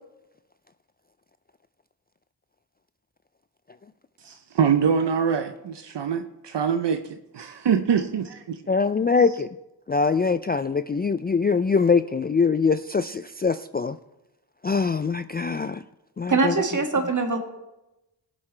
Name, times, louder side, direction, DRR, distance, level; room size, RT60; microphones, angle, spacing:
voice 1, 4.2-8.6, right 7 dB, 65° right, 0.8 m, -24 dB
voice 2, 8.7-9.5 9.9-13.9 14.6-15.8 16.2-16.3, left 5 dB, 25° left, 0.3 m, -23 dB
voice 3, 16.3-17.4, right 4 dB, 40° right, 2.0 m, -22 dB
17.5 x 7.4 x 3.3 m
cardioid pair, 50°, 44 cm